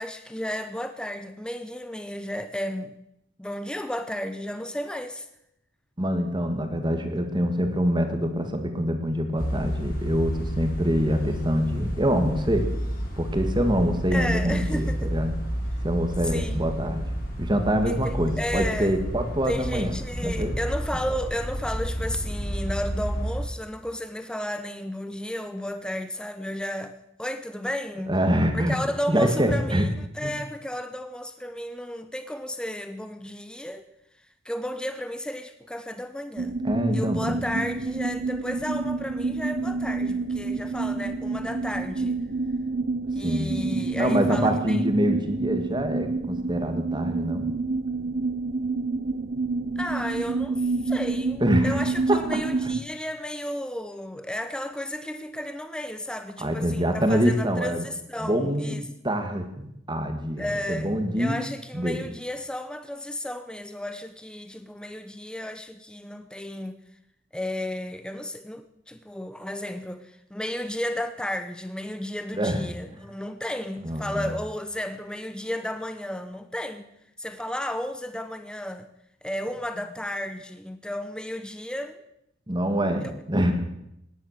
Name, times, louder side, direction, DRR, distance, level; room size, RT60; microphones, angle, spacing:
voice 1, 0.0-3.0 3.4-5.3 14.1-15.1 16.2-16.8 17.9-19.0 19.5-28.2 28.5-33.9 34.4-36.6 36.9-42.2 43.2-44.8 49.8-58.8 60.4-66.8 67.3-76.9 77.2-78.9 79.2-82.0, left 1 dB, 5° left, 0.7 m, -33 dB
voice 2, 6.0-12.7 13.2-15.4 15.8-17.0 17.4-19.9 20.2-20.5 28.1-28.8 29.1-29.9 30.2-30.3 36.6-37.7 43.2-47.5 51.4-51.8 52.1-52.2 56.4-57.8 58.2-58.8 59.0-61.4 61.7-62.0 72.4-72.6 73.8-74.3 82.5-83.5, equal, 25° right, 1.9 m, -25 dB
sound 1, 9.4-23.4, equal, 50° left, 7.3 m, -31 dB
sound 2, 36.4-52.8, right 3 dB, 50° right, 0.6 m, -28 dB
18.0 x 10.5 x 6.6 m
head